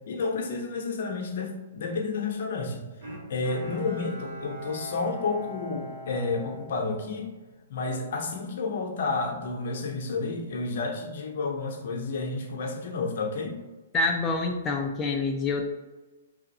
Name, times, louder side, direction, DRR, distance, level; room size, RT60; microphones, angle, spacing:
voice 1, 0.1-2.8 3.3-7.3 7.7-13.6, left 3 dB, 60° left, 2 dB, 0.8 m, -31 dB
Bowed string instrument, 3.0-7.5 8.0-8.1, equal, 60° right, 1.4 m, -41 dB
voice 2, 13.9-15.6, left 3 dB, 15° left, 0 dB, 0.3 m, -26 dB
3.3 x 2.5 x 4.0 m, 1.2 s
hypercardioid pair, 140°, 0 cm